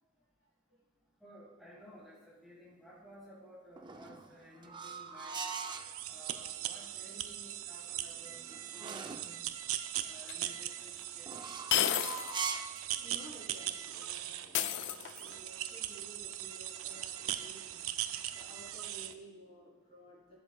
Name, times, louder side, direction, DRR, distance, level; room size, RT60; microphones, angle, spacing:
voice 1, 1.2-5.4 6.1-9.5 10.0-11.5, equal, ahead, -7 dB, 1.8 m, -55 dB
sound 1, 3.8-5.9 7.9-9.3 11.2-12.8, right 5 dB, 20° right, 0.5 m, -41 dB
voice 2, 5.7-6.3 13.0-17.9 18.3-20.4, right 1 dB, 30° left, -4 dB, 2.9 m, -55 dB
sound 2, 5.7-19.1, right 12 dB, 85° right, 0.5 m, -40 dB
sound 3, 10.3-10.4 11.7-12.4 12.8-12.9 14.5-15.4, left 10 dB, 60° left, 0.4 m, -31 dB
15.0 x 7.8 x 2.3 m, 1.2 s
head